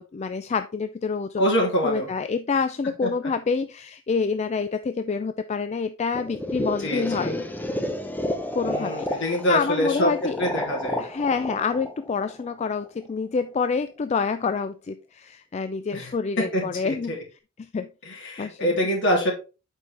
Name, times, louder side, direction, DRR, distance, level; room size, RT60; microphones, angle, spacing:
voice 1, 0.0-1.5 1.8-7.4 8.5-10.4 11.0-17.2 17.6-17.9 18.4-18.7, left 5 dB, 30° left, 10 dB, 0.3 m, -27 dB
voice 2, 1.4-2.1 3.0-3.1 6.8-7.3 8.6-11.0 15.9-16.1 16.4-17.2 18.0-19.3, equal, 60° left, 0 dB, 3.1 m, -25 dB
sound 1, 6.2-13.0, left 1 dB, 10° left, 0.8 m, -31 dB
7.8 x 5.3 x 3.3 m, 0.31 s
head